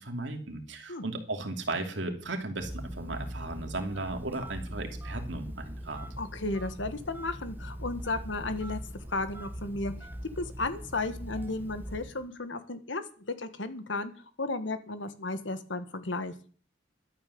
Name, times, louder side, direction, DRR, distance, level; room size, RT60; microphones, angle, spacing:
voice 1, 0.0-6.1, right 2 dB, 70° right, 4 dB, 2.7 m, -36 dB
Telephone, 2.6-12.3, equal, 10° right, 1.2 m, -41 dB
voice 2, 6.2-8.8 9.1-9.9 10.4-13.0 13.4-14.1 14.4-16.3, left 2 dB, 75° left, 11 dB, 1.5 m, -34 dB
12.0 x 8.9 x 6.9 m, 0.42 s
head